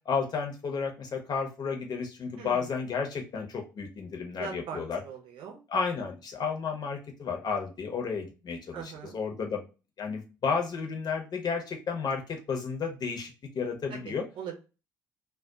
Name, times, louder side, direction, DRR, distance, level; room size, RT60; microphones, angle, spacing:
voice 1, 0.1-5.0 5.7-9.6 10.0-14.3, left 5 dB, 40° left, 2 dB, 0.8 m, -32 dB
voice 2, 2.4-2.7 4.4-5.6 8.7-9.2 13.9-14.6, right 7 dB, 55° right, 1 dB, 0.8 m, -41 dB
2.3 x 2.3 x 3.7 m, 0.32 s
figure-of-eight pair, 50°, 10 cm